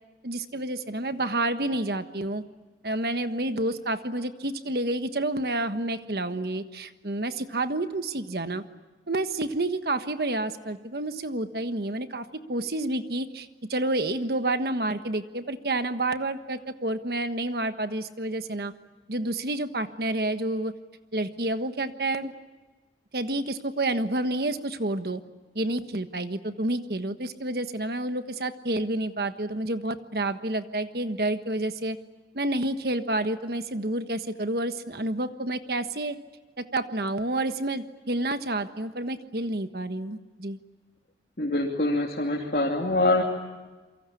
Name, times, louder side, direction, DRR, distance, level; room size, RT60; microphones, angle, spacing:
voice 1, 0.2-2.4 2.8-8.6 9.1-18.7 19.1-20.7 21.1-22.3 23.1-25.2 25.5-32.0 32.3-36.2 36.6-40.6, right 2 dB, 60° right, 9 dB, 1.4 m, -29 dB
voice 2, 41.4-43.2, left 2 dB, 55° left, -2 dB, 3.0 m, -24 dB
28.5 x 24.0 x 8.5 m, 1.2 s
head